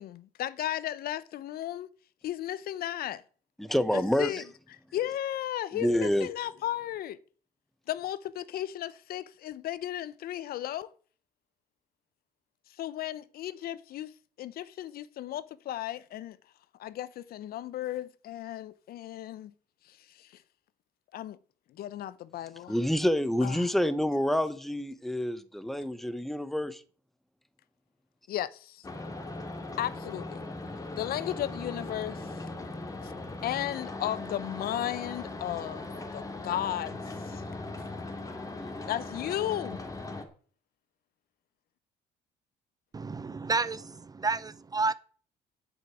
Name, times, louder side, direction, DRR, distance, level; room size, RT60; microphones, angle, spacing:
voice 1, 0.0-1.9 2.2-3.2 3.9-4.4 4.9-7.2 7.9-10.9 12.8-14.1 14.4-16.4 16.8-19.5 19.9-20.3 21.1-21.4 21.8-22.7 23.4-23.7 28.3-28.9 29.8-30.4 31.0-32.3 33.0-33.1 33.4-37.5 38.9-39.8, left 12 dB, 65° left, 0.7 m, -35 dB
voice 2, 3.6-4.4 5.7-6.3 22.7-26.8 38.6-38.9, left 1 dB, ahead, 1.0 m, -28 dB
sound 1, 28.8-40.2, left 2 dB, 20° left, 2.2 m, -39 dB
voice 3, 42.9-44.9, right 4 dB, 20° right, 0.6 m, -30 dB
8.1 x 8.1 x 8.2 m
cardioid pair, 110°, 17 cm